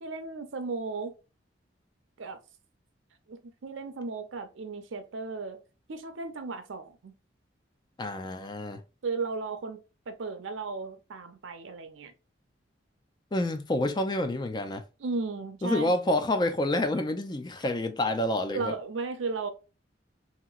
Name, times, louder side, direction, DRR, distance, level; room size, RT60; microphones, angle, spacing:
voice 1, 0.0-1.1 2.2-2.4 3.3-5.6 5.9-7.1 9.0-9.8 10.1-12.1 15.0-15.9 18.1-18.2 18.5-19.5, right 4 dB, 85° right, 0.6 m, -35 dB
voice 2, 8.0-8.8 13.3-14.8 15.6-18.7, left 1 dB, 20° left, 0.4 m, -28 dB
2.9 x 2.9 x 2.3 m
head